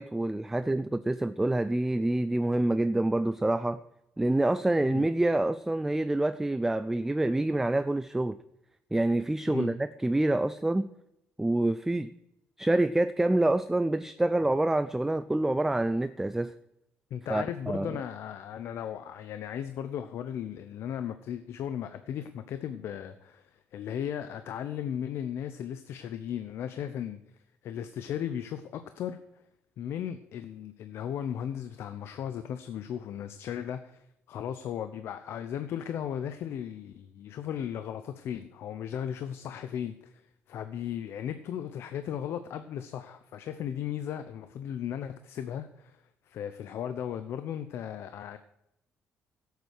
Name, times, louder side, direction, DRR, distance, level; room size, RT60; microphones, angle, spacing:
voice 1, 0.0-3.8 4.2-8.4 8.9-10.9 11.4-12.1 12.6-16.5 17.3-17.9, right 2 dB, 10° right, 0.4 m, -27 dB
voice 2, 17.1-27.2 27.6-29.2 29.8-48.4, left 9 dB, 70° left, 0.8 m, -36 dB
12.0 x 8.2 x 6.5 m
cardioid pair, 125°, 4 cm